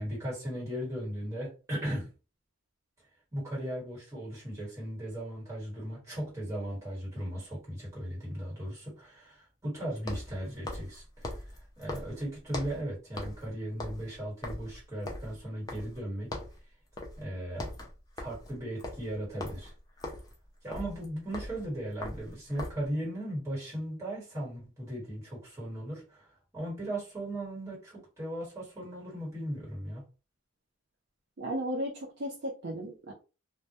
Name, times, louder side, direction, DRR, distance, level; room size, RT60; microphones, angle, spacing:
voice 1, 0.0-2.1 3.3-11.5 11.8-16.4 17.2-17.7 18.2-19.7 20.6-26.3 26.5-30.0, right 1 dB, 15° right, -7 dB, 1.2 m, -37 dB
sound 1, 6.6-6.7 10.0-12.9 13.2-13.5 13.7-16.0 16.3-16.6 17.0-17.2 17.5-22.9, left 1 dB, 15° left, 0.4 m, -41 dB
voice 2, 31.4-33.1, equal, 50° right, -2 dB, 0.4 m, -35 dB
2.1 x 2.1 x 2.8 m, 0.32 s
head